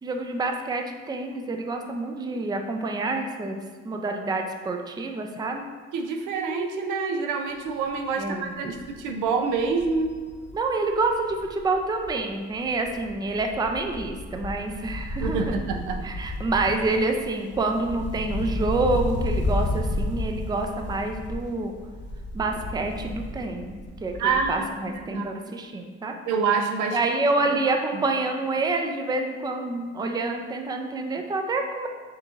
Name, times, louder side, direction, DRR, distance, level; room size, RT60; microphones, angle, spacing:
voice 1, 0.0-5.6 8.2-8.7 10.5-15.6 16.0-21.7 22.3-26.1 26.9-31.9, right 2 dB, 15° right, 4 dB, 0.4 m, -27 dB
voice 2, 5.9-10.2 15.2-16.1 24.2-24.7 24.9-25.3 26.3-27.0 27.4-27.5 27.9-28.0, right 5 dB, 90° right, 5 dB, 0.5 m, -27 dB
Wind, 7.6-7.9 8.3-8.4 8.7-12.2 12.5-24.7 25.0-25.1, left 1 dB, 35° left, 0.6 m, -32 dB
6.3 x 2.9 x 2.4 m, 1.5 s
cardioid pair, 90°, 30 cm